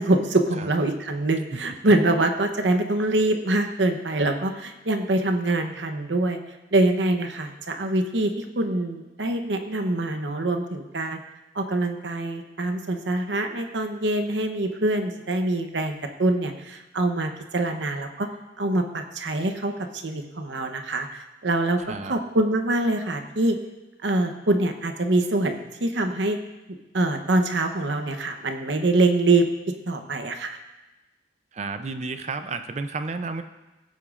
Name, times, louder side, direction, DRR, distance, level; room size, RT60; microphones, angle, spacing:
voice 1, 0.0-6.4 6.7-11.2 11.5-18.3 18.6-23.6 24.0-26.4 26.9-29.5 29.9-30.6, right 2 dB, 80° right, 6 dB, 0.9 m, -24 dB
voice 2, 31.5-33.4, right 3 dB, 40° right, 9 dB, 0.5 m, -31 dB
15.5 x 8.4 x 2.5 m, 1.1 s
head